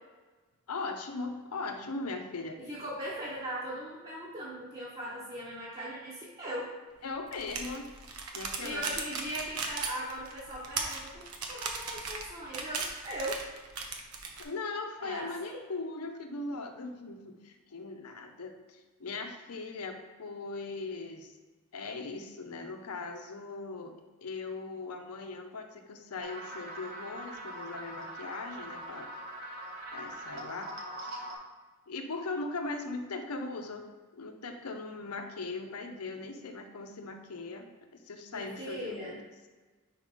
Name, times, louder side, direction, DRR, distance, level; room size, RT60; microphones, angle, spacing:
voice 1, 0.7-2.6 7.0-7.9 8.3-8.8 14.4-21.3 21.7-23.9 24.2-29.1 29.9-30.7 31.0-31.3 31.9-33.8 34.1-39.2, left 3 dB, 85° left, 5 dB, 0.7 m, -39 dB
voice 2, 2.6-6.7 8.6-13.4 15.0-15.6 38.3-39.2, right 1 dB, 25° right, -8 dB, 1.1 m, -39 dB
sound 1, 7.3-14.4, right 4 dB, 75° right, 0.9 m, -37 dB
sound 2, 26.2-31.3, right 1 dB, 50° right, 1.3 m, -42 dB
4.9 x 4.7 x 5.3 m, 1.3 s
head